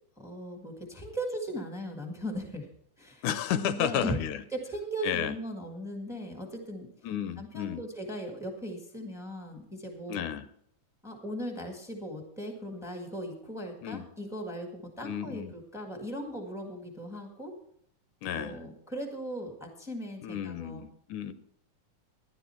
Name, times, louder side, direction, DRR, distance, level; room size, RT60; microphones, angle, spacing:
voice 1, 0.2-2.7 3.0-3.2 3.5-4.2 4.5-6.9 7.4-10.2 11.0-17.5 18.3-20.8, equal, 5° right, 2 dB, 0.4 m, -38 dB
voice 2, 3.2-4.4 5.0-5.4 7.0-7.8 10.1-10.5 13.8-14.0 15.0-15.5 18.2-18.6 20.2-21.3, left 10 dB, 80° left, 13 dB, 2.0 m, -32 dB
12.0 x 11.0 x 4.4 m, 0.67 s
omnidirectional pair, 3.5 m